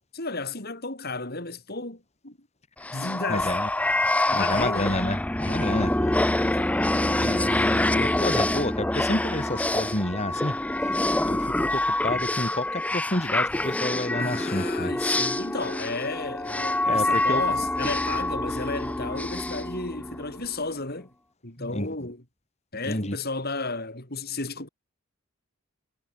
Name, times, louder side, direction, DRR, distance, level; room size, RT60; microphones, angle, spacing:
voice 1, 0.1-2.4 2.9-3.5 4.3-5.0 6.4-7.3 14.2-21.1 21.4-22.2 22.7-24.7, left 3 dB, 45° left, 4.3 m, -33 dB
sound 1, 2.8-20.5, left 1 dB, 5° left, 0.4 m, -26 dB
voice 2, 3.3-3.7 4.3-6.2 6.9-14.9 16.9-17.4 21.6-22.1 22.8-23.2, left 1 dB, 30° left, 4.0 m, -30 dB
head